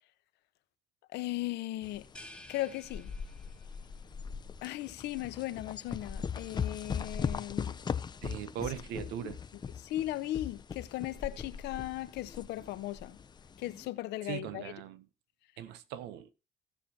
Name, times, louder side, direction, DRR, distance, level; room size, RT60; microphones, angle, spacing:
voice 1, 1.1-2.1 2.5-3.1 4.6-7.8 9.8-13.2 13.6-14.7, left 15 dB, 85° left, 0.8 m, -37 dB
sound 1, 1.8-13.9, left 6 dB, 25° left, 0.5 m, -39 dB
sound 2, 2.1-3.9, left 1 dB, 5° left, 1.0 m, -52 dB
voice 2, 8.2-9.4 14.2-15.0 15.6-16.3, right 10 dB, 90° right, 0.8 m, -39 dB
17.0 x 6.6 x 2.9 m
cardioid pair, 110°, 17 cm